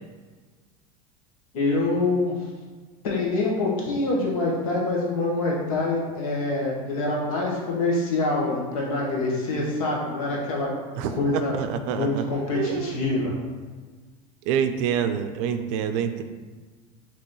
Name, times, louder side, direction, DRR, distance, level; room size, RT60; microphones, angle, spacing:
voice 1, 1.5-2.4 3.0-10.7 11.2-11.5 11.9-13.3, left 2 dB, 85° left, -3 dB, 1.3 m, -25 dB
voice 2, 10.9-12.2 12.5-13.0 14.5-16.2, right 8 dB, 60° right, 8 dB, 0.4 m, -27 dB
5.2 x 3.0 x 3.1 m, 1.4 s
supercardioid pair, 135°, 18 cm